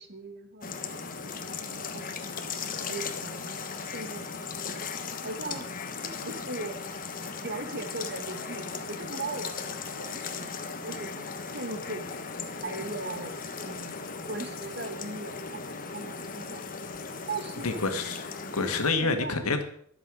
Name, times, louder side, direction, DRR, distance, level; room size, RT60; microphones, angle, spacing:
voice 1, 0.0-2.3 2.8-4.5 5.2-5.7 6.2-6.9 7.4-12.1 12.6-16.7 17.3-17.8 19.0-19.4, right 3 dB, 50° right, 1.7 m, -39 dB
sound 1, 0.6-18.9, left 5 dB, 40° left, 1.3 m, -37 dB
voice 2, 17.6-18.3 18.5-19.6, left 3 dB, 85° left, 1.8 m, -27 dB
23.0 x 8.1 x 5.0 m
head